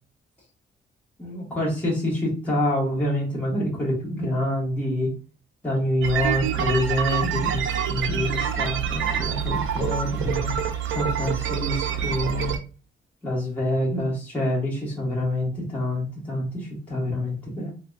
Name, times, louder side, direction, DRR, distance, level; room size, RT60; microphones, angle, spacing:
voice 1, 1.2-5.1 5.6-10.5 10.9-12.5 13.2-17.7, left 1 dB, 5° left, -6 dB, 1.2 m, -26 dB
sound 1, 6.0-12.6, right 8 dB, 70° right, 0.5 m, -26 dB
3.5 x 2.2 x 2.3 m, 0.35 s
wide cardioid pair, 160°, 20 cm